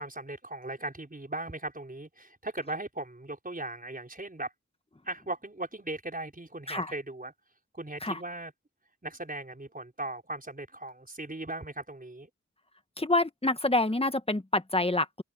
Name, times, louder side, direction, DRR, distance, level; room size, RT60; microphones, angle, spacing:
voice 1, 0.0-4.5 5.0-7.3 7.7-8.5 9.0-12.3, right 2 dB, 30° right, 5.0 m, -38 dB
voice 2, 13.0-15.2, left 2 dB, 20° left, 1.5 m, -27 dB
cardioid pair, 50°, 31 cm